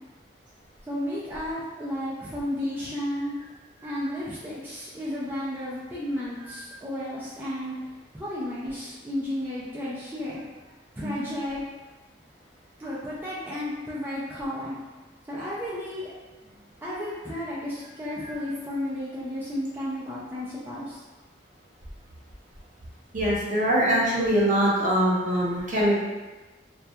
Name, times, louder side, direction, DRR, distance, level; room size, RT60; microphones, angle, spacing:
voice 1, 0.9-3.3 3.8-10.4 11.0-11.6 12.8-14.8 15.3-16.1 16.8-21.0, left 1 dB, 10° right, -8 dB, 0.3 m, -33 dB
voice 2, 23.1-26.0, equal, 45° right, -5 dB, 0.6 m, -23 dB
2.6 x 2.2 x 2.2 m, 1.2 s
head